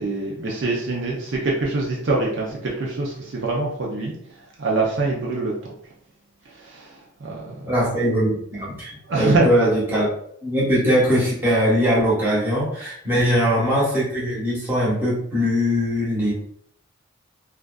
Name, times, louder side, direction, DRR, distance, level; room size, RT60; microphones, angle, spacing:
voice 1, 0.0-4.1 4.6-5.5 6.5-7.5 9.1-9.5 13.1-13.3, right 3 dB, 60° right, -3 dB, 0.5 m, -24 dB
voice 2, 7.6-10.1 10.4-16.3, equal, 10° right, -8 dB, 0.9 m, -21 dB
2.5 x 2.3 x 2.2 m, 0.68 s
head